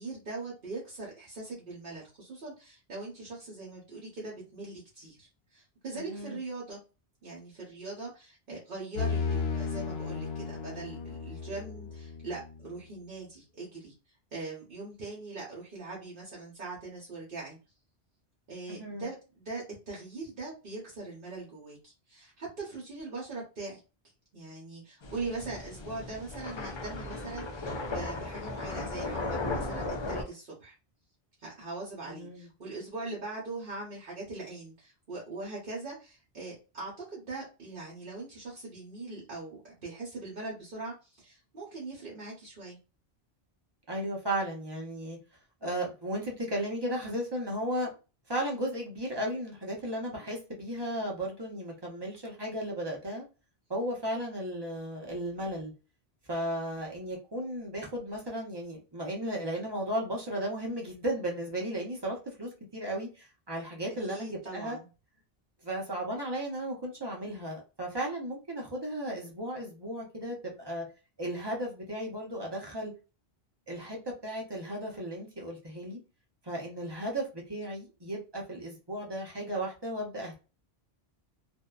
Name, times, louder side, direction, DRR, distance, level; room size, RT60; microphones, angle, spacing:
voice 1, 0.0-6.8 7.2-13.9 14.3-17.6 18.5-23.8 24.3-30.7 31.4-42.8 64.1-64.9, right 3 dB, 60° right, 1.0 m, -41 dB
voice 2, 5.9-6.4 18.7-19.1 32.1-32.5 43.9-45.2 45.6-47.9 48.3-53.3 53.7-55.7 56.3-64.8 65.6-70.8 71.2-72.9 73.7-76.0 76.4-80.4, right 1 dB, 25° right, 0.7 m, -35 dB
sound 1, 9.0-12.7, left 5 dB, 75° left, 0.8 m, -34 dB
sound 2, 25.0-30.2, left 2 dB, 45° left, 0.3 m, -36 dB
2.6 x 2.1 x 2.3 m
omnidirectional pair, 1.1 m